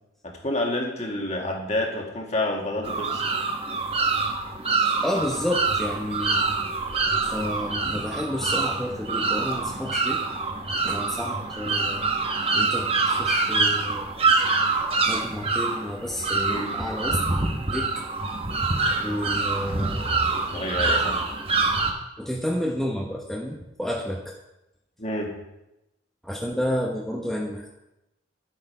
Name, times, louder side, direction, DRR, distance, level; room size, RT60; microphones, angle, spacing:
voice 1, 0.2-3.3 16.5-16.8 20.5-21.2 25.0-25.4, left 1 dB, 35° left, 0 dB, 1.9 m, -29 dB
sound 1, 2.8-21.9, right 3 dB, 30° right, 1.0 m, -25 dB
voice 2, 5.0-6.4 7.2-10.2 10.8-12.0 12.5-14.1 14.7-17.2 17.7-18.0 19.0-20.1 22.2-24.4 26.2-27.7, left 1 dB, ahead, -2 dB, 0.9 m, -30 dB
11.5 x 8.1 x 5.5 m, 0.94 s
head